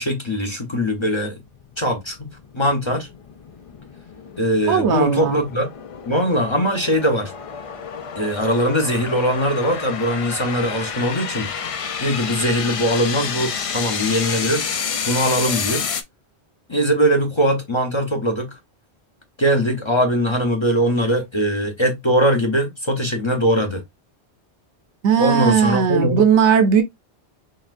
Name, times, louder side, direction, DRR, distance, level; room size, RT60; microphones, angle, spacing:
voice 1, 0.0-1.4 1.8-2.3 2.5-3.1 4.4-5.7 6.0-7.3 8.2-11.5 12.0-14.7 15.1-15.9 16.7-18.6 19.4-23.8 25.2-26.2, equal, 30° left, 0.7 m, -21 dB
sound 1, 1.5-16.0, left 6 dB, 55° left, 0.3 m, -30 dB
voice 2, 4.7-5.4 25.0-26.8, right 7 dB, 85° right, 1.1 m, -17 dB
4.0 x 3.5 x 2.5 m
omnidirectional pair, 1.1 m